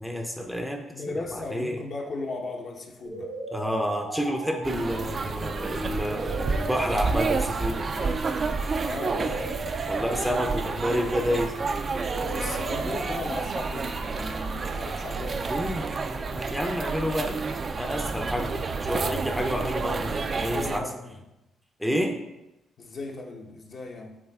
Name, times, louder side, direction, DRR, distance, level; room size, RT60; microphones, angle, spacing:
voice 1, 0.0-0.8 1.1-1.8 3.5-8.2 9.9-11.7 15.5-17.5 17.7-20.9 21.8-22.2, equal, ahead, 3 dB, 0.6 m, -29 dB
voice 2, 0.9-3.3 8.8-9.6 12.1-15.7 20.3-21.2 22.8-24.2, left 3 dB, 50° left, 1 dB, 1.0 m, -37 dB
sound 1, 3.0-15.0, right 2 dB, 90° right, 1.8 m, -38 dB
sound 2, 4.6-20.8, right 4 dB, 40° right, 0.4 m, -30 dB
7.3 x 3.9 x 3.6 m, 0.94 s
cardioid pair, 90°, 0 cm